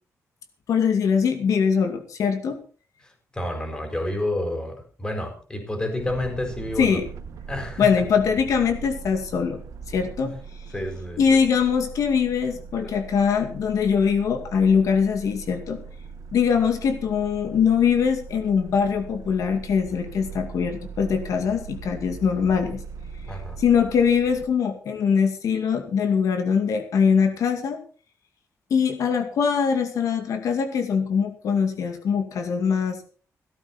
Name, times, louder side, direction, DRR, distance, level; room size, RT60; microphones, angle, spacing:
voice 1, 0.7-2.6 6.8-7.0 7.8-9.6 9.9-10.3 11.2-15.8 16.3-22.8 23.6-27.8 28.7-33.0, left 6 dB, 85° left, 6 dB, 2.3 m, -22 dB
voice 2, 3.0-7.0 7.5-8.0 10.2-10.4 10.7-11.4 12.8-12.9 23.3-23.6, left 1 dB, 15° left, 5 dB, 4.5 m, -30 dB
sound 1, 6.0-24.5, right 6 dB, 85° right, 1.3 m, -40 dB
16.5 x 13.0 x 4.4 m, 0.39 s
wide cardioid pair, 160°, 6 cm